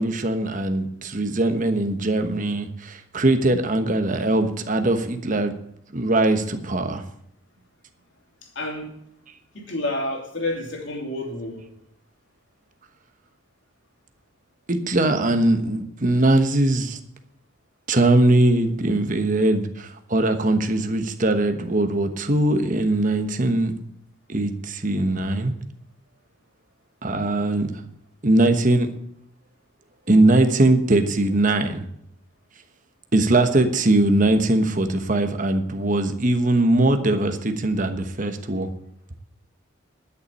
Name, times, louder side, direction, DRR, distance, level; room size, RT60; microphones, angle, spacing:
voice 1, 0.0-5.5 5.9-7.0 14.7-17.0 17.9-23.7 24.3-25.5 27.0-27.7 28.2-28.9 30.1-31.8 33.1-38.7, right 2 dB, 40° right, 1.1 m, -21 dB
voice 2, 8.4-8.9 9.5-11.7, left 1 dB, 60° left, 3.0 m, -29 dB
11.5 x 7.0 x 8.3 m
head